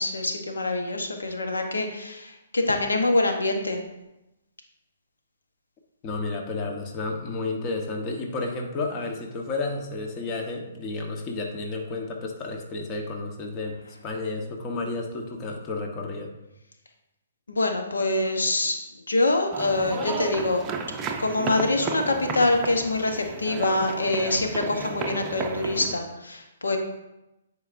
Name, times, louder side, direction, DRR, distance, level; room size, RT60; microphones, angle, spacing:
voice 1, 0.0-3.8 17.5-18.8 19.1-20.6 21.2-26.8, left 2 dB, 90° left, 4 dB, 1.0 m, -25 dB
voice 2, 6.0-13.8 14.0-16.3, left 3 dB, 30° left, 2 dB, 1.1 m, -31 dB
sound 1, 19.5-26.0, right 5 dB, 20° right, 0.6 m, -33 dB
9.6 x 4.7 x 2.6 m, 0.92 s
hypercardioid pair, 140°, 0 cm